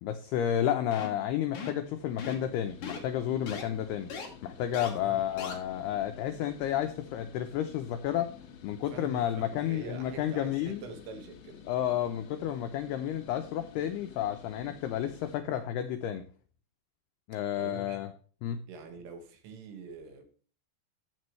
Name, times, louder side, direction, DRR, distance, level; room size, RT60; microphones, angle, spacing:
voice 1, 0.0-4.1 4.4-8.3 8.6-10.8 11.7-16.2 17.3-18.1 18.4-18.6, left 10 dB, 90° left, 2.3 m, -31 dB
sound 1, 0.9-1.2 1.5-1.8 2.2-2.5 2.8-3.0 3.5-3.6 4.1-4.3 4.7-4.9 5.4-5.5, left 5 dB, 45° left, 3.0 m, -38 dB
sound 2, 1.8-15.4, left 7 dB, 70° left, 1.8 m, -51 dB
voice 2, 5.0-5.7 8.9-11.6 17.6-18.0 18.7-20.3, right 4 dB, 80° right, 4.2 m, -45 dB
15.0 x 7.6 x 3.2 m
omnidirectional pair, 5.6 m